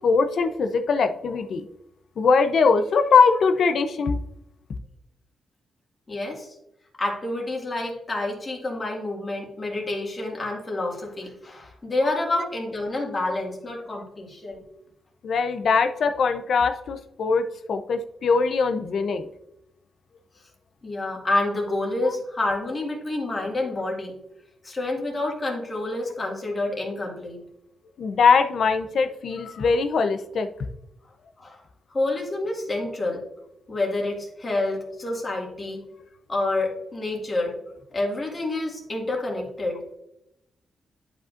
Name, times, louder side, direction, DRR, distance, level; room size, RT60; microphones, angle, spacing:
voice 1, 0.0-1.6 2.2-4.2 12.1-12.2 15.2-19.3 28.0-30.5, left 5 dB, 60° left, 8 dB, 0.6 m, -21 dB
voice 2, 6.1-6.5 7.0-14.6 20.8-24.2 24.6-27.4 31.4-31.6 31.9-33.2 33.7-35.8 36.3-37.6 37.9-39.8, left 2 dB, 25° left, -1 dB, 2.0 m, -28 dB
11.0 x 5.2 x 2.5 m, 0.83 s
wide cardioid pair, 135°, 0 cm